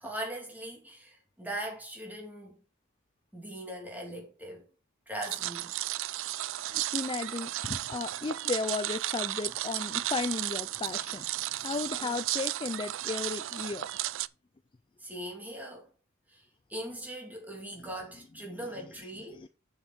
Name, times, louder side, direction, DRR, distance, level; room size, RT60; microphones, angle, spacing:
voice 1, 0.0-2.6 3.3-4.7 5.1-5.7 12.0-12.2 15.0-15.9 16.3-19.5, right 1 dB, 10° right, 3.0 m, -40 dB
sound 1, 5.2-14.3, right 15 dB, 65° right, 0.4 m, -34 dB
voice 2, 6.6-11.3 11.6-13.9 19.3-19.5, left 4 dB, 25° left, 0.4 m, -35 dB
7.2 x 7.1 x 4.4 m
head